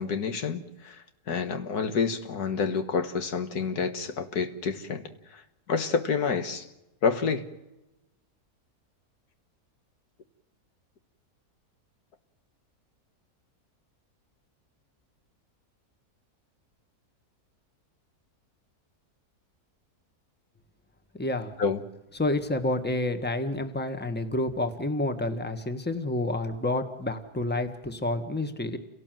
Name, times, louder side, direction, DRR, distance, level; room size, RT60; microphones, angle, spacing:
voice 1, 0.0-5.4 5.7-6.7 7.0-7.5 21.6-21.8, left 5 dB, 80° left, 2.0 m, -29 dB
voice 2, 21.1-21.5 22.1-28.8, left 2 dB, 5° left, 1.4 m, -29 dB
29.0 x 17.5 x 7.6 m
omnidirectional pair, 1.6 m